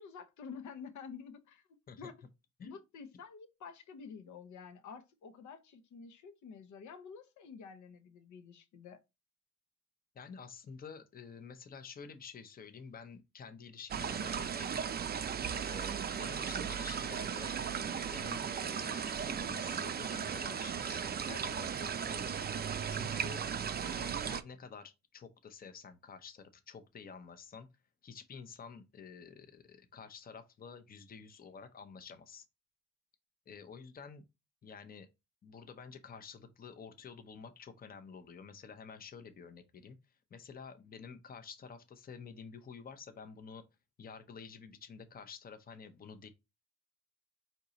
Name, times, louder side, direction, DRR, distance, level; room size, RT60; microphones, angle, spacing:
voice 1, 0.0-2.2 2.6-9.0, left 6 dB, 75° left, 0.8 m, -49 dB
voice 2, 10.1-14.8 15.5-23.4 23.8-27.7 28.0-32.4 33.5-34.2 34.6-35.1 35.4-40.0 40.3-43.7 44.0-46.3, left 6 dB, 30° left, 0.7 m, -50 dB
sound 1, 13.9-24.4, right 7 dB, 35° right, 0.5 m, -36 dB
4.5 x 2.8 x 3.9 m
cardioid pair, 90°, 30 cm